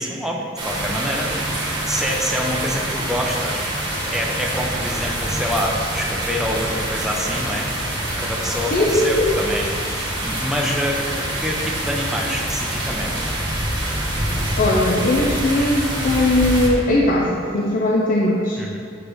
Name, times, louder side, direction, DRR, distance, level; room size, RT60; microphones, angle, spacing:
voice 1, 0.0-3.7 4.1-7.7 8.2-13.3 18.6-18.8, equal, ahead, -2 dB, 0.6 m, -26 dB
sound 1, 0.6-16.7, right 1 dB, 25° right, 1.3 m, -25 dB
voice 2, 8.7-9.3 14.6-18.6, left 1 dB, 45° left, -3 dB, 0.5 m, -19 dB
8.2 x 3.2 x 5.0 m, 2.5 s
head